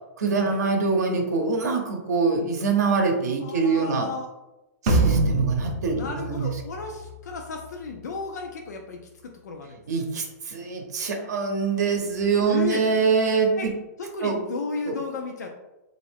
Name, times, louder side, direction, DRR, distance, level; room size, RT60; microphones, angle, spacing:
voice 1, 0.2-4.1 4.8-6.5 9.9-13.7 14.2-14.4 14.9-15.0, right 4 dB, 75° right, 2 dB, 0.7 m, -24 dB
voice 2, 3.4-4.3 5.9-9.8 12.4-12.8 13.5-13.7 14.0-15.5, left 4 dB, 80° left, 2 dB, 0.5 m, -34 dB
sound 1, 4.9-7.3, right 2 dB, 30° right, 0.5 m, -24 dB
3.0 x 2.5 x 3.3 m, 0.97 s
hypercardioid pair, 175°, 9 cm